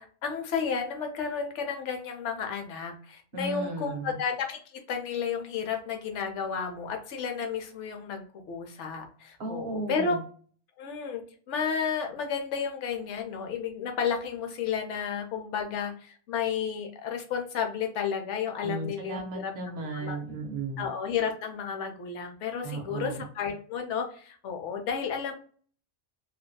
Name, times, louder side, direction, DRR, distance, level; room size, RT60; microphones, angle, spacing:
voice 1, 0.0-10.2 10.8-19.5 19.9-20.2 20.8-25.3, left 6 dB, 75° left, 4 dB, 0.9 m, -32 dB
voice 2, 3.3-4.2 9.4-10.2 18.6-20.9 22.6-23.3, right 3 dB, 60° right, 3 dB, 0.8 m, -35 dB
2.5 x 2.2 x 2.2 m, 0.43 s
omnidirectional pair, 1.3 m